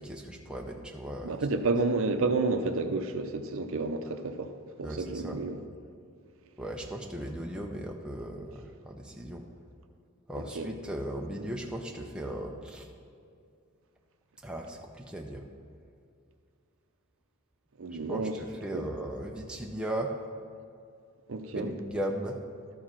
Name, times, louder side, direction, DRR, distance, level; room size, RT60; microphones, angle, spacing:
voice 1, 0.0-1.4 4.8-5.4 6.6-9.5 10.3-12.9 14.4-15.4 18.1-20.2 21.5-22.4, right 1 dB, 5° right, 0 dB, 0.5 m, -37 dB
voice 2, 1.2-4.5 4.8-5.6 10.4-10.7 17.8-18.3 18.7-18.8 21.3-21.7, right 3 dB, 65° right, 7 dB, 0.6 m, -30 dB
12.5 x 4.7 x 5.8 m, 2.4 s
head